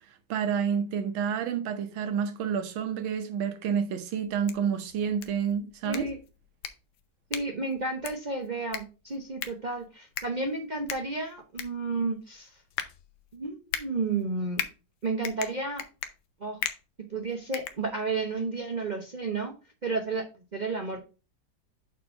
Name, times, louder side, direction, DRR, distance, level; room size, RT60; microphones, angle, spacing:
voice 1, 0.3-6.1, right 7 dB, 90° right, 1.7 m, -29 dB
sound 1, 4.2-18.4, left 10 dB, 80° left, 1.5 m, -40 dB
voice 2, 5.8-6.2 7.3-12.6 13.3-14.6 15.0-15.8 16.4-16.6 17.1-19.5 19.8-21.0, right 3 dB, 70° right, 0.4 m, -32 dB
4.9 x 4.4 x 5.5 m
omnidirectional pair, 2.1 m